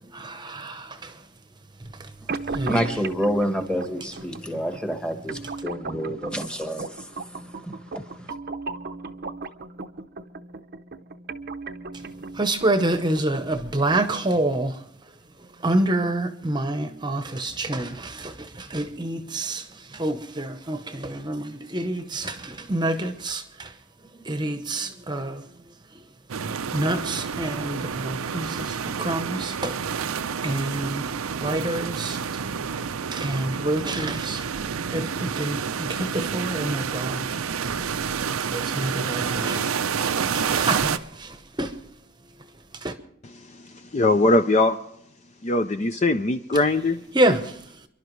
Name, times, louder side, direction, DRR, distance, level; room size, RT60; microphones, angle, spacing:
voice 1, 0.0-1.2 1.8-2.1 2.5-3.0 4.4-4.5 12.3-14.9 15.4-23.7 24.1-26.0 26.4-29.8 30.4-32.2 33.1-34.6 34.9-37.4 37.9-41.9 42.3-42.9 47.1-47.9, right 1 dB, 20° right, 0.9 m, -28 dB
sound 1, 2.3-14.3, right 3 dB, 45° right, 0.7 m, -37 dB
voice 2, 2.7-8.3, equal, 5° left, 1.2 m, -29 dB
sound 2, 26.3-41.0, right 6 dB, 85° right, 0.6 m, -29 dB
voice 3, 43.4-44.8 45.4-47.0, left 2 dB, 30° left, 0.5 m, -21 dB
29.0 x 11.5 x 3.2 m
head